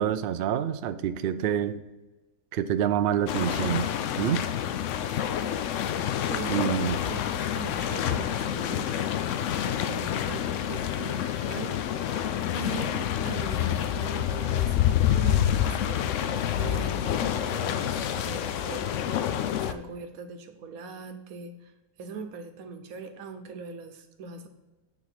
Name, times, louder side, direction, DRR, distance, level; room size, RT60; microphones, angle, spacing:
voice 1, 0.0-1.8 2.5-3.9 4.2-4.4 6.5-7.0, right 9 dB, 90° right, 11 dB, 0.5 m, -27 dB
sound 1, 3.3-19.7, left 10 dB, 70° left, 0.8 m, -28 dB
voice 2, 6.3-6.8 7.1-11.8 12.5-21.7 22.0-24.5, right 5 dB, 75° right, 7 dB, 1.3 m, -41 dB
9.2 x 3.6 x 5.9 m, 1.1 s
omnidirectional pair, 1.5 m